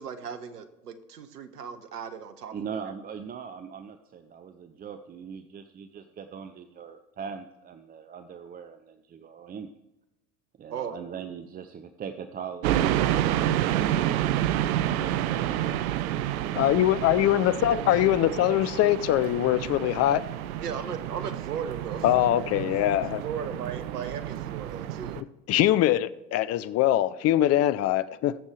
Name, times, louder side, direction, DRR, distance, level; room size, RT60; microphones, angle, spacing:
voice 1, 0.0-2.7 10.7-11.0 17.2-18.6 20.6-22.1 23.1-25.2, right 7 dB, 80° right, 1.1 m, -37 dB
voice 2, 2.5-9.7 10.6-16.4 20.8-20.9 24.3-24.4, right 7 dB, 20° right, 0.5 m, -41 dB
sound 1, 12.6-25.2, right 12 dB, 65° right, 0.7 m, -29 dB
voice 3, 16.6-20.3 22.0-23.2 25.2-28.3, left 13 dB, 35° left, 0.5 m, -23 dB
21.0 x 7.2 x 3.3 m
hypercardioid pair, 80°, 46 cm